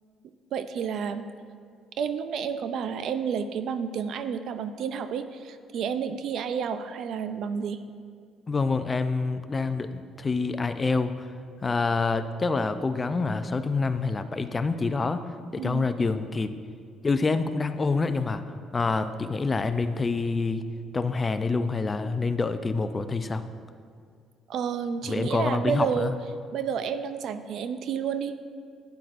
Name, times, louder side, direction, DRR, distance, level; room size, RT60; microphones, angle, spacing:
voice 1, 0.5-1.3 2.0-7.8 15.6-15.8 24.5-26.1 26.5-28.3, right 7 dB, 65° right, 11 dB, 0.5 m, -30 dB
voice 2, 8.5-11.3 11.6-15.2 15.5-16.5 17.0-18.4 18.7-20.6 20.9-23.4 25.1-26.1, left 4 dB, 25° left, 10 dB, 0.4 m, -27 dB
12.0 x 9.3 x 2.5 m, 2.3 s
cardioid pair, 100°, 0 cm